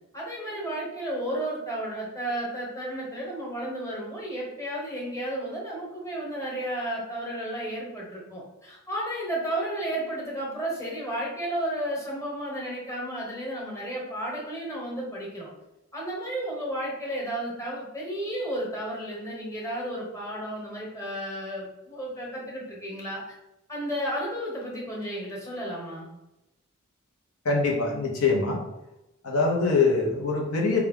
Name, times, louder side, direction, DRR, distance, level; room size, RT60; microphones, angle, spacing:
voice 1, 0.1-15.5 15.9-23.2 23.7-26.1 29.3-29.4, right 1 dB, 15° left, -4 dB, 1.1 m, -33 dB
voice 2, 27.4-28.6 29.2-30.8, left 3 dB, 80° left, 0 dB, 0.8 m, -23 dB
4.3 x 2.4 x 3.6 m, 0.94 s
head